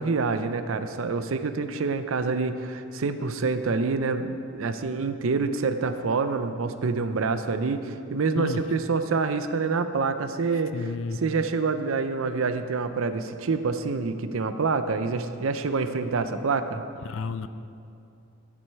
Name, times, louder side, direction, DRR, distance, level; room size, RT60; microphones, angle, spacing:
voice 1, 0.0-10.7 11.2-16.8, right 4 dB, 65° right, 10 dB, 0.5 m, -27 dB
voice 2, 10.7-11.2 17.0-17.5, left 4 dB, 60° left, 12 dB, 0.4 m, -31 dB
14.0 x 6.2 x 4.6 m, 2.5 s
head